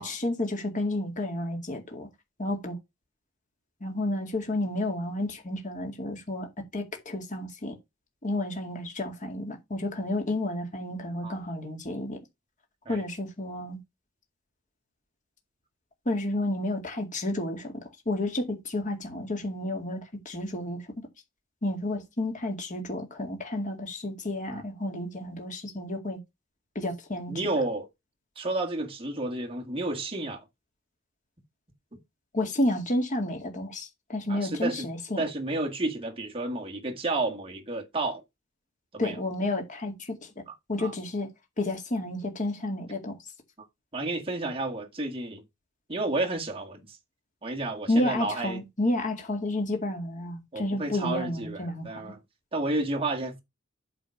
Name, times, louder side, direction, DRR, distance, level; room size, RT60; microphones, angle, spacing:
voice 1, 0.0-2.1 2.4-2.8 3.8-7.8 8.2-12.2 12.9-13.8 16.1-20.8 21.6-26.2 26.8-27.3 32.3-35.2 39.0-40.3 40.7-41.3 41.6-43.2 47.9-52.1, left 1 dB, 40° left, 2.1 m, -31 dB
voice 2, 27.3-27.9 28.4-30.4 34.3-34.9 35.2-38.2 38.9-39.2 40.5-40.6 40.8-40.9 43.9-45.4 45.9-47.0 47.4-48.6 50.5-52.2 52.5-53.4, right 2 dB, 30° right, 1.9 m, -31 dB
8.6 x 4.1 x 5.9 m
head